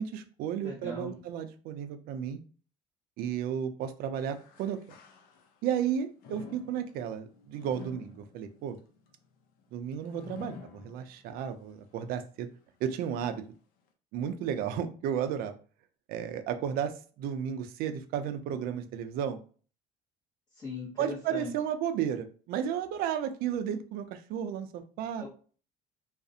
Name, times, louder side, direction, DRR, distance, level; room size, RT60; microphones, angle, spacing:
voice 1, 0.0-2.4 3.2-4.8 5.6-8.8 9.7-12.5 12.8-13.4 14.1-15.6 16.1-19.4 21.0-25.2, right 9 dB, 70° right, 8 dB, 0.4 m, -33 dB
voice 2, 0.6-1.1 20.5-21.5 25.2-25.3, left 3 dB, 25° left, -5 dB, 0.7 m, -40 dB
sound 1, 4.1-5.7 6.2-11.5 11.9-12.0 12.9-13.0, left 5 dB, 70° left, 0.5 m, -50 dB
2.4 x 2.0 x 2.6 m, 0.40 s
cardioid pair, 135°, 16 cm